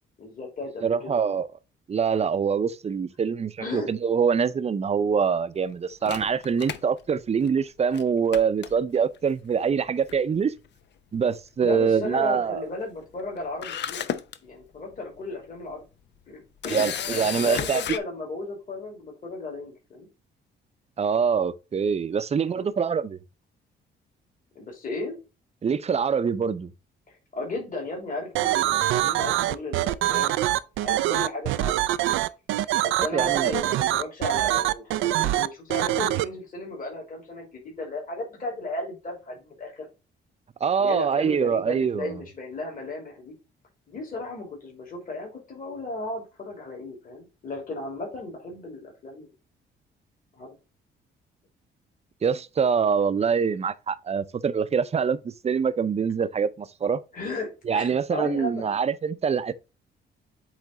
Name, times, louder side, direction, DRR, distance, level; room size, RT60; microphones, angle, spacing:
voice 1, 0.2-1.4 3.6-3.9 11.6-14.1 14.4-15.8 16.3-20.1 22.4-22.7 24.5-25.2 27.1-31.8 32.8-39.9 40.8-43.3 43.9-49.3 50.4-50.5 57.1-58.8, left 2 dB, 45° left, 3.1 m, -35 dB
voice 2, 0.8-1.5 1.9-10.5 11.1-12.7 16.7-17.8 21.0-23.2 25.6-26.7 33.1-33.5 40.6-42.2 52.2-57.0 57.7-59.5, right 6 dB, 30° right, 0.6 m, -24 dB
Camera, 6.1-7.6 7.9-8.0 8.3-9.2 10.1-10.4 10.6-10.7 13.2-13.3 13.6-14.4 14.9-15.1 16.6-18.0, left 9 dB, 65° left, 0.7 m, -32 dB
sound 1, 28.4-36.2, right 14 dB, 85° right, 0.4 m, -24 dB
8.1 x 3.3 x 3.9 m
cardioid pair, 90°, 20 cm